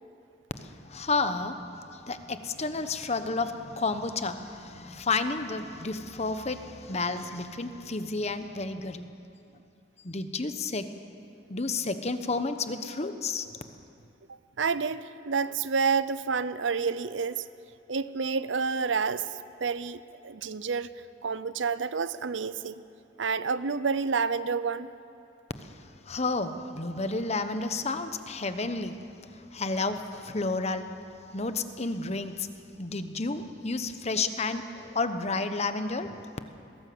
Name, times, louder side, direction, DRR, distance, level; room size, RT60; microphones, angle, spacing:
voice 1, 0.5-9.1 10.0-10.9 11.5-13.5 25.6-25.7 26.1-29.0 29.5-30.9 31.3-32.5 32.8-36.2, left 3 dB, 35° left, 9 dB, 1.0 m, -31 dB
voice 2, 14.3-17.4 17.9-20.9 21.2-22.8 23.2-24.9, right 5 dB, 85° right, 15 dB, 0.7 m, -29 dB
20.5 x 17.5 x 7.9 m, 2.6 s
head